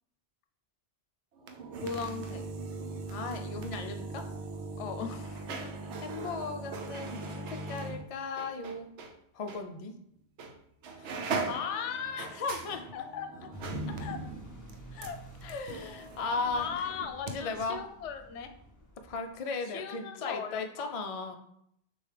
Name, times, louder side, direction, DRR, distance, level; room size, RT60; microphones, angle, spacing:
sound 1, 1.4-9.1 9.5-9.6 10.4-10.6 10.8-17.3 17.6-17.7, right 3 dB, 90° right, 0.9 m, -39 dB
voice 1, 1.8-2.5 4.8-5.8 11.5-12.3 12.9-13.5 14.0-14.2 14.9-15.2 16.5-18.5 19.7-20.9, left 7 dB, 85° left, 7 dB, 0.9 m, -38 dB
voice 2, 3.1-4.3 6.0-8.9 9.3-9.9 11.0-11.3 12.2-12.9 15.4-16.8 17.3-17.8 19.0-21.4, left 4 dB, 60° left, 5 dB, 0.3 m, -36 dB
sound 2, 13.5-19.3, equal, 20° left, 0.7 m, -50 dB
6.4 x 2.3 x 3.3 m, 0.73 s
omnidirectional pair, 1.2 m